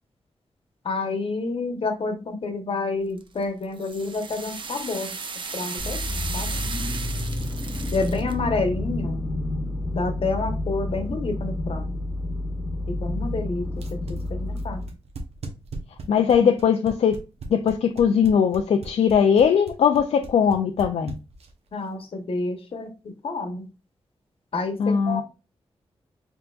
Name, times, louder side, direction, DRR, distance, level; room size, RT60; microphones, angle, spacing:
voice 1, 0.8-5.1 5.5-6.0 6.3-6.6 7.9-9.2 9.9-11.9 12.9-14.8 21.7-22.9 23.2-23.7 24.5-25.2, left 3 dB, 60° left, 1.1 m, -29 dB
sound 1, 3.2-8.3, right 4 dB, 50° right, 0.7 m, -35 dB
sound 2, 5.8-14.9, left 1 dB, 25° left, 1.0 m, -29 dB
sound 3, 13.7-21.7, right 3 dB, 80° right, 1.0 m, -38 dB
voice 2, 16.1-17.1 17.5-21.2 24.8-25.2, left 7 dB, 80° left, 0.4 m, -20 dB
4.5 x 3.8 x 2.4 m
wide cardioid pair, 100°, 10 cm